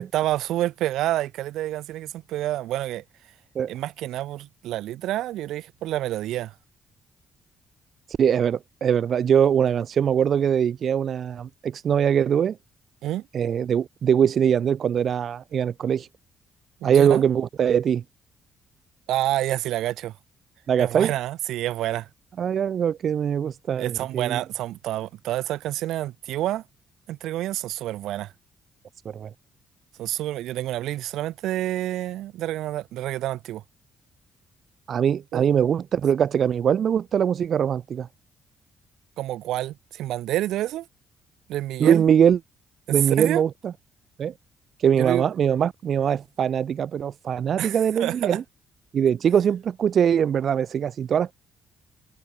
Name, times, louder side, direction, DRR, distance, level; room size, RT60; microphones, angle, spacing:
voice 1, 0.1-3.0 3.7-6.5 13.0-13.2 16.8-17.2 19.1-20.1 20.8-22.1 23.8-26.6 27.1-28.3 30.0-33.6 35.3-35.5 39.2-40.9 41.5-42.0 42.9-43.4 45.0-45.2 47.6-48.4, right 14 dB, 85° right, 4.3 m, -28 dB
voice 2, 8.2-12.6 13.3-16.1 16.8-18.0 20.7-21.1 22.4-24.4 29.0-29.3 34.9-38.1 41.8-42.4 42.9-43.7 44.2-44.3 44.8-48.4 48.9-51.3, right 8 dB, 60° right, 4.5 m, -22 dB
cardioid pair, 90°, 0 cm